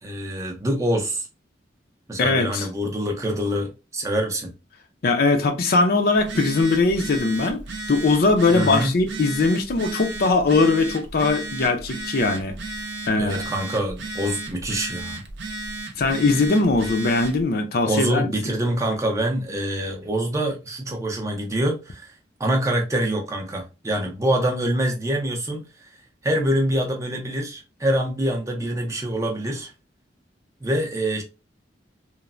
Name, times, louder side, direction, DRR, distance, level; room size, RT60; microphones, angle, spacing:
voice 1, 0.0-1.3 2.1-4.5 8.5-8.9 13.2-15.2 17.9-22.1 22.4-25.9 26.2-29.7 30.6-31.2, right 1 dB, 15° right, 0.5 m, -25 dB
voice 2, 2.2-2.7 5.0-7.6 7.9-12.6 13.1-13.4 16.0-18.3, left 3 dB, 55° left, 0.5 m, -20 dB
Telephone, 6.1-17.4, right 2 dB, 70° right, 0.5 m, -34 dB
3.1 x 2.0 x 2.4 m
head